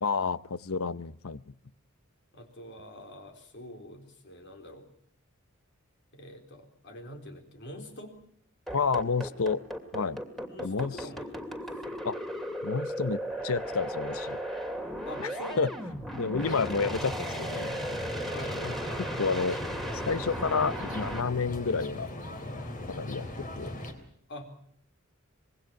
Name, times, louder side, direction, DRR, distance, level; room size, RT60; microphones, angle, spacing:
voice 1, 0.0-1.5 8.7-9.6 9.9-10.2 10.6-10.9 12.0-12.2 12.6-14.4 15.2-15.3 15.6-15.7 16.1-17.8 18.6-19.6 20.1-22.1 22.9-23.7, left 4 dB, 80° left, 17 dB, 0.8 m, -30 dB
voice 2, 2.3-4.9 6.1-8.2 10.4-12.0 15.1-16.0 18.3-18.7 24.3-24.5, left 1 dB, 55° left, 5 dB, 4.1 m, -45 dB
sound 1, 8.7-21.2, equal, ahead, 2.7 m, -36 dB
sound 2, 16.4-23.9, left 1 dB, 40° left, 3.5 m, -38 dB
25.5 x 21.5 x 5.9 m, 0.66 s
head